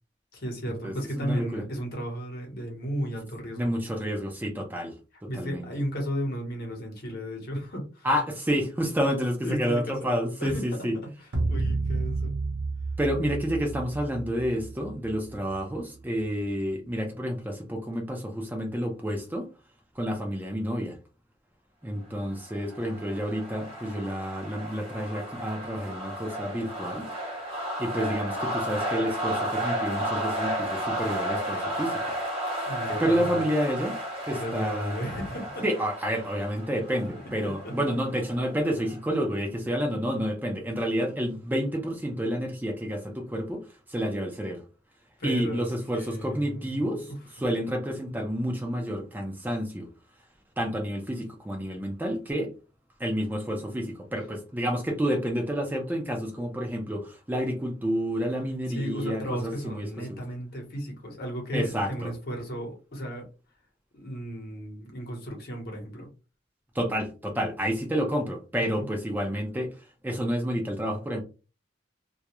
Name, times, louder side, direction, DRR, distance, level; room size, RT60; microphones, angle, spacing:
voice 1, 0.3-3.7 5.3-8.1 9.4-10.1 10.4-10.6 10.9-12.4 32.7-33.5 34.3-35.6 37.4-37.7 45.2-47.2 58.7-63.3 63.9-66.1 68.6-68.9, equal, 55° left, 0.9 m, -34 dB
voice 2, 0.8-1.6 3.6-4.9 5.2-5.7 8.0-11.0 13.0-19.5 20.0-21.0 21.8-27.1 27.8-32.1 33.0-34.0 34.3-35.1 35.6-43.6 43.9-44.6 45.2-49.9 50.6-52.5 53.0-60.2 61.5-62.1 66.7-69.7 70.0-71.2, equal, 10° right, 0.4 m, -29 dB
sound 1, 11.3-15.8, right 3 dB, 65° right, 0.7 m, -31 dB
sound 2, 22.3-39.0, right 1 dB, 30° right, 0.9 m, -33 dB
2.3 x 2.1 x 2.9 m
head